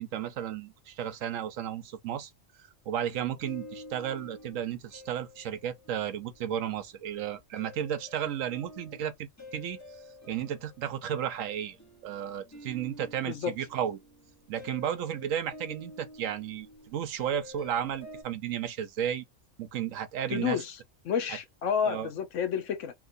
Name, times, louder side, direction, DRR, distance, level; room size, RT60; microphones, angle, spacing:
voice 1, 0.0-2.3 2.9-9.8 10.3-11.8 12.0-14.0 14.5-19.2 19.6-20.6 21.9-22.1, right 9 dB, 85° right, 1.1 m, -33 dB
sound 1, 3.2-7.1 7.6-18.2, left 1 dB, 20° left, 0.6 m, -50 dB
voice 2, 20.3-20.8 21.0-22.9, left 7 dB, 75° left, 1.1 m, -30 dB
2.9 x 2.9 x 2.5 m
omnidirectional pair, 1.3 m